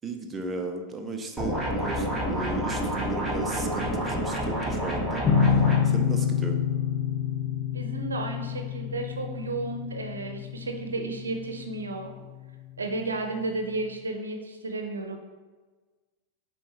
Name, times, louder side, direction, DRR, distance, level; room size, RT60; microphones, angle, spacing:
voice 1, 0.0-6.6, right 3 dB, 20° right, 4 dB, 0.8 m, -36 dB
sound 1, 1.4-5.8, equal, 10° left, 1.6 m, -29 dB
sound 2, 5.2-12.4, left 7 dB, 30° left, 0.5 m, -28 dB
voice 2, 7.7-12.1 12.8-15.2, right 2 dB, 75° right, 5 dB, 0.7 m, -33 dB
7.0 x 4.7 x 3.0 m, 1.3 s
figure-of-eight pair, 90°, 0 cm